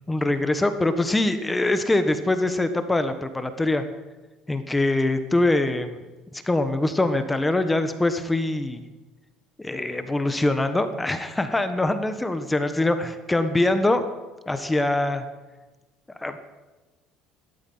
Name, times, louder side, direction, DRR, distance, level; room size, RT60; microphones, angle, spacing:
voice 1, 0.1-3.9 4.5-6.0 6.3-8.9 9.6-14.0 14.5-15.2 16.2-16.4, left 2 dB, 15° left, 9 dB, 1.3 m, -23 dB
15.5 x 13.0 x 5.6 m, 1.2 s
supercardioid pair, 85°, 0 cm